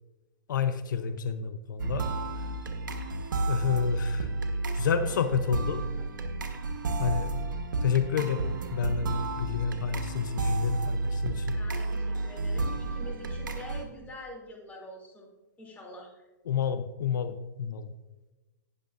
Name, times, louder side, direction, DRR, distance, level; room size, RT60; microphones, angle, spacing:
voice 1, 0.5-2.1 3.5-4.3 4.7-5.8 7.0-7.3 7.8-11.6 16.5-17.9, left 7 dB, 80° left, 11 dB, 0.6 m, -29 dB
sound 1, 1.8-13.8, right 2 dB, 85° right, 1.2 m, -31 dB
voice 2, 11.5-15.3 15.6-16.3, left 1 dB, 15° left, -2 dB, 2.7 m, -45 dB
18.5 x 6.7 x 2.5 m, 1.1 s
hypercardioid pair, 130°, 10 cm